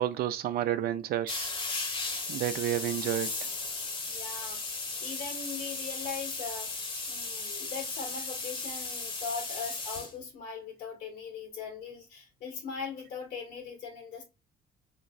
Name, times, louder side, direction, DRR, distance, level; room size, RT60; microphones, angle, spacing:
voice 1, 0.0-1.5 2.3-3.3, right 12 dB, 65° right, 0.5 m, -30 dB
sound 1, 1.3-10.1, left 3 dB, 30° left, 0.9 m, -36 dB
voice 2, 4.1-6.8 7.1-14.2, left 5 dB, 85° left, 2.1 m, -40 dB
3.7 x 3.0 x 2.3 m
cardioid pair, 110°, 17 cm